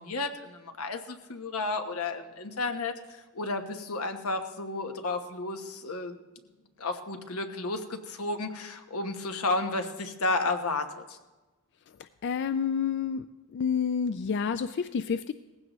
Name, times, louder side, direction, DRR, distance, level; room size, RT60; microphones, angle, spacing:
voice 1, 0.0-6.2 6.8-11.2, left 3 dB, 85° left, 6 dB, 1.2 m, -32 dB
voice 2, 12.0-13.3 13.5-15.3, left 6 dB, 55° left, 11 dB, 0.4 m, -29 dB
18.5 x 15.5 x 3.1 m, 1.1 s
head